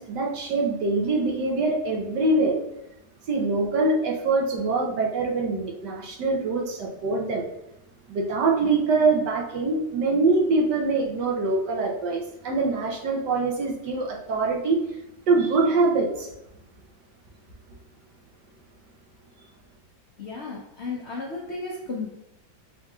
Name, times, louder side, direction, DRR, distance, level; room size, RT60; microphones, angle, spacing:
voice 1, 0.0-2.6 3.3-7.4 8.1-14.8 15.3-16.3, right 3 dB, 70° right, 0 dB, 1.2 m, -24 dB
voice 2, 20.2-22.1, left 3 dB, 75° left, -3 dB, 0.6 m, -34 dB
6.3 x 2.6 x 2.3 m, 0.86 s
omnidirectional pair, 2.1 m